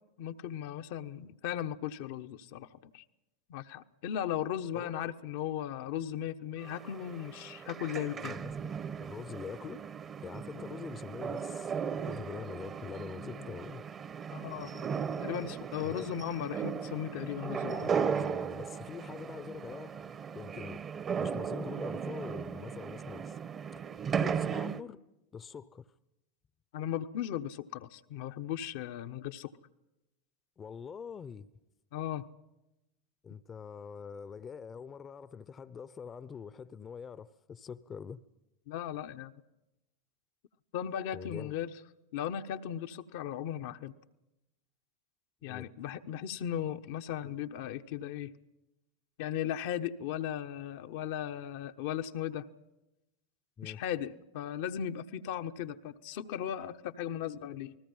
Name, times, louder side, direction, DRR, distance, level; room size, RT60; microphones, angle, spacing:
voice 1, 0.2-3.0 3.5-8.3 14.3-17.9 26.7-29.5 31.9-32.3 38.7-39.3 40.7-41.7 42.1-43.9 45.4-48.3 49.2-52.5 53.6-57.8, left 10 dB, 60° left, 1.0 m, -37 dB
voice 2, 4.7-5.1 8.1-9.8 10.2-13.8 15.8-16.2 17.8-20.1 20.3-20.8 21.2-23.4 24.1-25.0 25.3-25.9 30.6-31.5 33.2-38.2 41.1-41.5 45.4-45.7 53.6-53.8, left 6 dB, 25° left, 0.9 m, -44 dB
sound 1, 6.6-24.8, right 7 dB, 30° right, 1.1 m, -37 dB
29.0 x 20.0 x 5.6 m
figure-of-eight pair, 85°, 0 cm